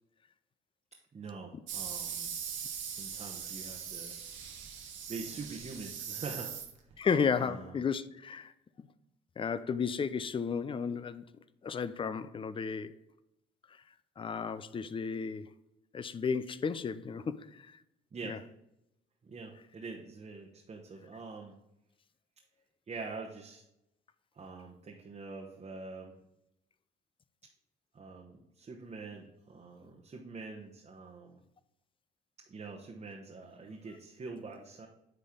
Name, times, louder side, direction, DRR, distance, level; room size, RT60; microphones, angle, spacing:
voice 1, 1.1-2.3 2.9-4.2 5.1-6.6 7.0-7.1 7.4-7.8 18.1-18.4 19.2-21.5 22.9-23.6 24.3-26.1 27.9-31.4 32.5-34.9, right 4 dB, 35° right, 1.0 m, -45 dB
sound 1, 1.7-7.0, right 8 dB, 70° right, 1.1 m, -41 dB
voice 2, 7.0-8.5 8.8-8.9 9.4-11.3 11.6-13.0 14.2-15.5 15.9-17.7 18.3-18.4, left 6 dB, 25° left, 0.4 m, -33 dB
9.5 x 3.4 x 3.7 m
supercardioid pair, 70°, 20 cm